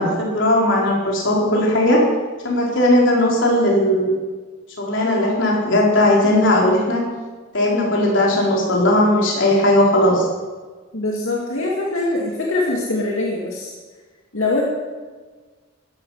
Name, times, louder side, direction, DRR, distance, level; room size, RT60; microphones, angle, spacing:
voice 1, 0.0-2.0 2.4-4.1 4.8-7.0 7.5-10.3, left 1 dB, 60° left, -2 dB, 4.2 m, -17 dB
voice 2, 10.9-13.7 14.3-14.6, left 2 dB, 85° left, -3 dB, 2.5 m, -23 dB
15.0 x 12.5 x 5.8 m, 1.4 s
head